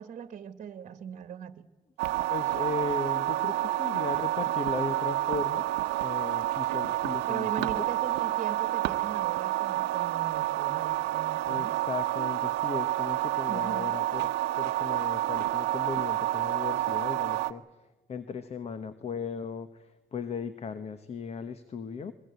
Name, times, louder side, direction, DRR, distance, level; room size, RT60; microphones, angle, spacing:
voice 1, 0.0-1.7 7.3-11.8 13.5-13.9, right 8 dB, 45° right, 11 dB, 1.5 m, -40 dB
sound 1, 2.0-17.5, right 15 dB, 90° right, 0.9 m, -29 dB
voice 2, 2.3-5.7 6.0-7.9 11.5-17.6 18.1-22.1, left 5 dB, 40° left, 12 dB, 1.2 m, -37 dB
23.5 x 22.0 x 8.2 m, 1.2 s
cardioid pair, 110°, 17 cm